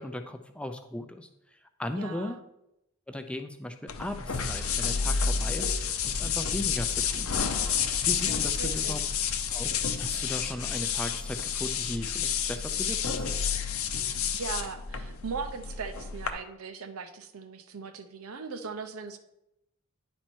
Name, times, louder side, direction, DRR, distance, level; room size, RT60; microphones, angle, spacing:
voice 1, 0.0-2.4 3.1-7.4 8.1-9.0 9.5-13.3, left 1 dB, 5° left, 6 dB, 0.4 m, -37 dB
voice 2, 2.0-2.4 8.6-8.9 14.3-19.2, right 5 dB, 80° right, 8 dB, 0.7 m, -39 dB
sound 1, 3.9-16.3, left 6 dB, 75° left, 0.7 m, -30 dB
10.0 x 4.4 x 4.5 m, 0.87 s
head